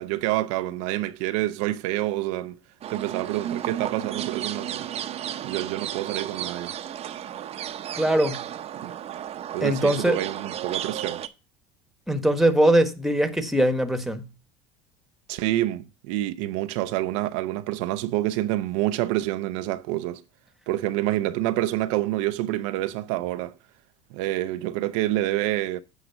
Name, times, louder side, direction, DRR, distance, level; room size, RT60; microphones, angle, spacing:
voice 1, 0.0-2.6 2.9-4.9 5.4-6.7 8.8-8.9 9.5-11.2 15.3-20.2 20.7-23.6 24.1-25.8, right 15 dB, 75° right, 0.5 m, -27 dB
sound 1, 2.8-11.3, right 10 dB, 40° right, 0.7 m, -33 dB
voice 2, 7.9-8.4 9.6-10.2 12.1-14.2, right 1 dB, ahead, 1.2 m, -21 dB
8.2 x 4.9 x 5.9 m
supercardioid pair, 95°, 16 cm